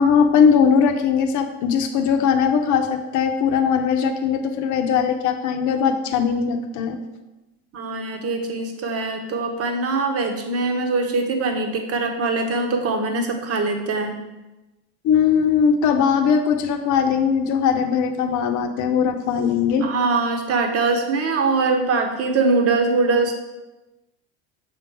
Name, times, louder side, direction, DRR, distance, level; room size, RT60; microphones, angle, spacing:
voice 1, 0.0-7.0 15.0-19.9, left 6 dB, 55° left, 7 dB, 0.9 m, -19 dB
voice 2, 7.7-14.2 19.8-23.4, right 3 dB, 40° right, 4 dB, 1.1 m, -22 dB
6.6 x 3.8 x 4.7 m, 1.0 s
supercardioid pair, 110°, 36 cm